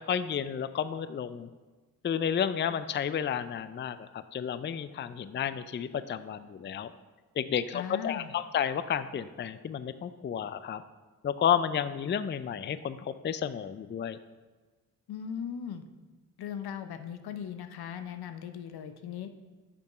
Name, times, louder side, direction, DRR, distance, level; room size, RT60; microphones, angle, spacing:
voice 1, 0.0-1.5 2.0-6.9 7.4-10.8 11.2-14.2, left 8 dB, 30° left, 13 dB, 0.4 m, -31 dB
voice 2, 7.7-8.3 15.1-15.8 16.4-19.3, left 8 dB, 75° left, 9 dB, 0.7 m, -38 dB
7.0 x 5.3 x 5.6 m, 1.3 s
supercardioid pair, 40°, 38 cm